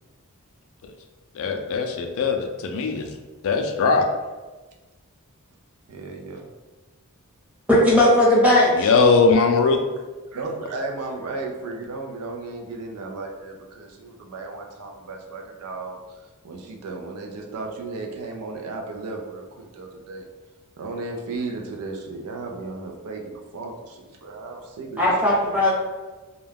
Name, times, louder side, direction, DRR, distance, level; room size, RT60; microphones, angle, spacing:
voice 1, 1.3-3.1 3.4-4.1 8.8-9.8, left 4 dB, 65° left, 4 dB, 0.3 m, -20 dB
voice 2, 5.9-6.5 10.3-16.0 16.4-20.2 20.8-25.1, right 3 dB, 85° right, 2 dB, 0.4 m, -34 dB
voice 3, 7.7-8.9 25.0-25.7, left 1 dB, 5° right, -7 dB, 0.8 m, -17 dB
2.3 x 2.2 x 3.3 m, 1.2 s
head